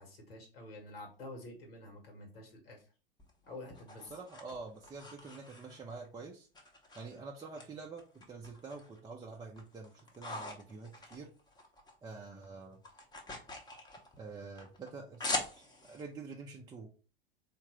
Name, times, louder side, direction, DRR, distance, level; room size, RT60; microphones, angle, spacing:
voice 1, 0.0-2.8 3.4-4.1, left 2 dB, 80° left, 2 dB, 1.3 m, -48 dB
sound 1, 3.2-6.1 6.5-7.7 8.0-9.0 9.4-12.0 12.2-16.0, left 2 dB, 15° left, 0.8 m, -43 dB
voice 2, 4.0-6.5 7.0-11.3 12.0-12.8 14.2-15.3 15.9-16.9, right 4 dB, 15° right, -1 dB, 0.5 m, -47 dB
3.6 x 2.6 x 3.0 m, 0.36 s
hypercardioid pair, 90°, 29 cm